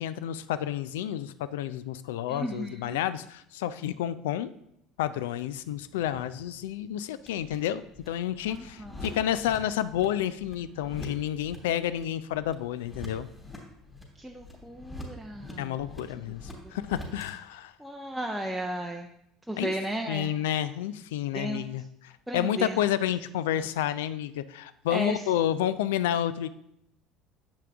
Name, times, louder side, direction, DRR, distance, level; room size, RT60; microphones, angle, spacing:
voice 1, 0.0-4.5 5.0-13.3 15.6-17.7 19.6-19.7 20.1-26.5, left 11 dB, 75° left, 14 dB, 0.3 m, -30 dB
voice 2, 2.3-3.0 8.5-9.2 14.2-15.8 17.8-19.1 19.5-20.3 21.3-21.7 22.3-22.8 24.9-25.2, right 1 dB, 5° right, 1 dB, 0.6 m, -34 dB
sound 1, 5.3-17.3, left 1 dB, 15° left, 3.0 m, -46 dB
7.8 x 5.8 x 3.4 m, 0.79 s
hypercardioid pair, 70°, 0 cm